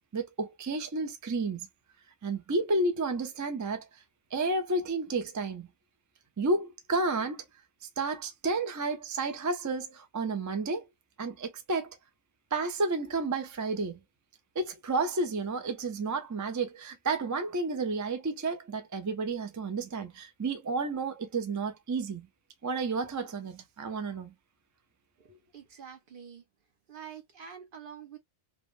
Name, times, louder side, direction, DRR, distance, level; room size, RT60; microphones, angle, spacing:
voice 1, 0.1-1.7 2.2-3.9 4.3-5.7 6.4-7.4 8.0-10.9 11.2-12.0 12.5-14.0 14.6-22.3 22.6-24.3, right 3 dB, 30° right, 0.3 m, -31 dB
voice 2, 25.5-26.4 26.9-28.2, right 7 dB, 55° right, 0.9 m, -46 dB
3.4 x 2.1 x 2.4 m
omnidirectional pair, 1.1 m